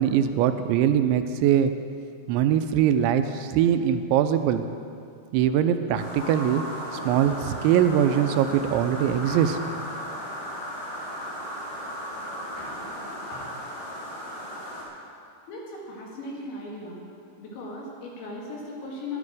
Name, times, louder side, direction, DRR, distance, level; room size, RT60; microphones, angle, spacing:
voice 1, 0.0-1.7 2.3-4.6 5.3-6.6 7.1-9.6, right 9 dB, 90° right, 9 dB, 2.9 m, -22 dB
sound 1, 6.0-14.8, equal, 60° left, 4.8 m, -35 dB
voice 2, 15.5-17.0 17.4-19.2, left 2 dB, 75° left, -3 dB, 3.9 m, -37 dB
15.0 x 10.5 x 4.8 m, 2.4 s
omnidirectional pair, 5.2 m